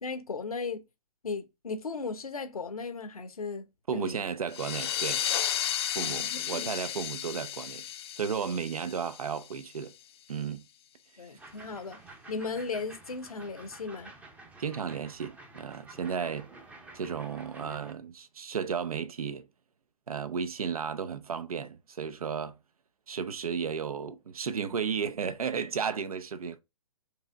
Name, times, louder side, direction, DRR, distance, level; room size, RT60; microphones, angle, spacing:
voice 1, 0.0-0.8 1.2-3.7 3.9-4.2 6.0-6.7 7.3-7.4 11.2-12.0 12.3-14.1, left 4 dB, 85° left, 0.9 m, -36 dB
voice 2, 3.9-5.2 6.0-7.9 8.2-9.9 10.3-10.6 11.2-11.4 14.6-16.5 16.9-19.5 20.1-22.5 23.1-26.6, right 6 dB, 75° right, 0.7 m, -34 dB
sound 1, 4.5-9.8, left 10 dB, 45° left, 0.6 m, -33 dB
sound 2, 11.4-17.9, right 2 dB, 5° right, 0.6 m, -50 dB
4.9 x 2.9 x 3.4 m
hypercardioid pair, 130°, 18 cm